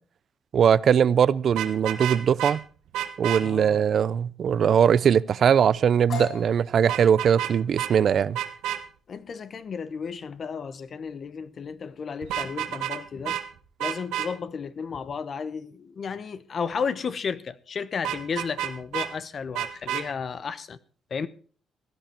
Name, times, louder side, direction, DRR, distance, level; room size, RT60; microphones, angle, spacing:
voice 1, 0.5-2.6 3.2-8.4, right 8 dB, 55° right, 0.5 m, -21 dB
Vehicle horn car horn honking, 1.5-2.5 2.9-3.4 6.9-7.5 7.8-7.9 8.3-8.8 12.2-13.0 13.2-13.4 13.8-14.3 18.0-19.1 19.5-20.0, right 12 dB, 90° right, 1.4 m, -29 dB
voice 2, 3.4-3.8 9.1-13.4 13.8-20.8 21.1-21.3, left 6 dB, 50° left, 0.9 m, -33 dB
sound 1, 6.1-13.7, left 5 dB, 65° left, 5.9 m, -42 dB
16.5 x 10.5 x 4.5 m
cardioid pair, 90°, 0 cm